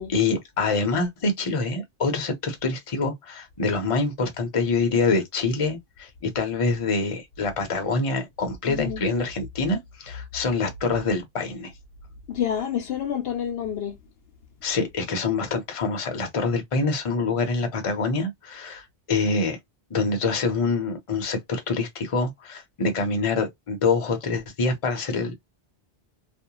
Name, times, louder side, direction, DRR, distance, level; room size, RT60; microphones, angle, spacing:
voice 1, 0.0-11.7 14.6-19.6 19.9-25.4, left 3 dB, 35° left, 0.7 m, -25 dB
voice 2, 8.6-9.0 12.3-14.0, left 9 dB, 70° left, 0.7 m, -28 dB
2.5 x 2.0 x 2.8 m
omnidirectional pair, 1.1 m